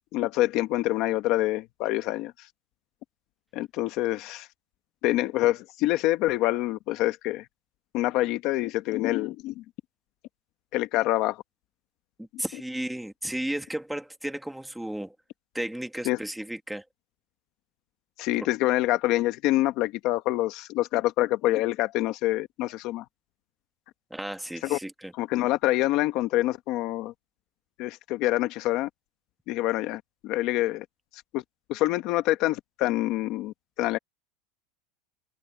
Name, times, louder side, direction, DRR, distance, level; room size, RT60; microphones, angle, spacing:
voice 1, 0.1-2.3 3.5-4.5 5.0-7.4 7.9-9.6 10.7-11.4 16.0-16.2 18.2-23.0 24.6-24.8 25.2-27.1 27.8-28.9 29.5-30.8 31.3-31.4 31.7-34.0, left 16 dB, 40° left, 0.9 m, -26 dB
voice 2, 12.2-15.1 15.5-16.8 18.3-18.5 24.1-25.1, right 1 dB, ahead, 1.5 m, -34 dB
supercardioid pair, 175°, 0 cm